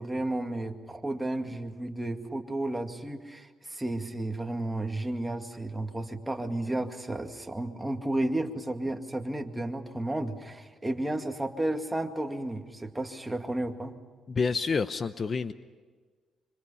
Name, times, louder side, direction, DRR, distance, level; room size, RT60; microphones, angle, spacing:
voice 1, 0.0-13.9, right 1 dB, 10° right, 4 dB, 2.2 m, -32 dB
voice 2, 14.3-15.5, left 4 dB, 40° left, 12 dB, 0.8 m, -28 dB
26.0 x 26.0 x 5.7 m, 1.5 s
cardioid pair, 90°, 0 cm